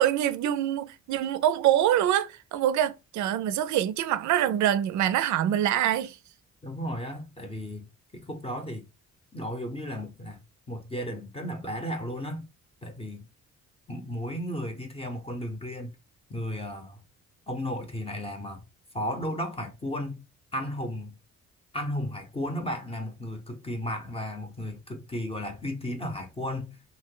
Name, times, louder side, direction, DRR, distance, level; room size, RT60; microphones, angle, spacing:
voice 1, 0.0-6.2, right 11 dB, 75° right, 0.5 m, -25 dB
voice 2, 6.6-8.9 9.3-10.4 10.7-12.5 12.8-13.3 13.9-15.9 16.3-17.0 17.5-18.6 18.9-20.2 20.5-21.2 21.7-26.8, equal, 20° left, 0.7 m, -34 dB
2.8 x 2.0 x 3.7 m
cardioid pair, 90°, 30 cm